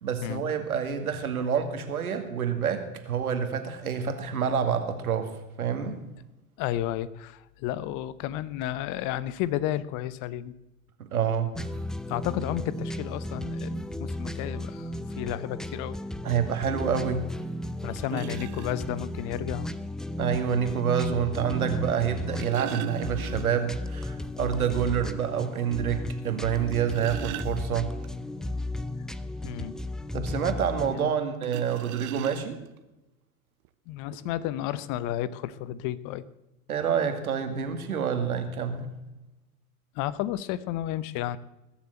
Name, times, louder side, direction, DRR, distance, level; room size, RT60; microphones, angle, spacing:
voice 1, 0.0-5.3 5.6-6.0 11.1-11.7 16.2-17.3 17.8-18.2 20.2-27.9 30.1-32.6 36.7-38.9, right 7 dB, 80° right, 7 dB, 2.3 m, -28 dB
voice 2, 6.6-10.5 12.1-16.0 17.8-19.7 29.4-29.8 30.9-31.1 33.9-36.2 39.9-41.4, left 13 dB, 45° left, 18 dB, 0.9 m, -32 dB
sound 1, 11.5-31.0, left 1 dB, ahead, 0.5 m, -34 dB
sound 2, 17.4-17.5 18.1-18.7 20.1-20.2 22.0-23.8 24.1-24.2 24.6-24.7 25.2-25.3 26.5-28.1 31.4-32.8 33.6-33.7 34.1-34.3, right 14 dB, 45° right, 1.0 m, -40 dB
20.5 x 7.3 x 7.9 m, 0.96 s
hypercardioid pair, 90°, 43 cm